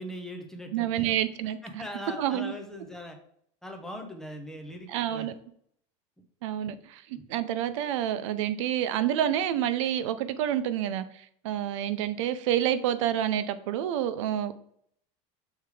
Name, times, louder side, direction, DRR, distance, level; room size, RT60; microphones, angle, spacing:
voice 1, 0.0-1.1 1.6-3.2 3.6-5.3, equal, 5° left, 3 dB, 0.5 m, -40 dB
voice 2, 0.7-1.6 2.2-2.5 4.9-5.3 6.4-11.0 11.4-14.5, right 11 dB, 70° right, 12 dB, 0.6 m, -28 dB
6.6 x 3.4 x 4.7 m, 0.66 s
cardioid pair, 180°, 16 cm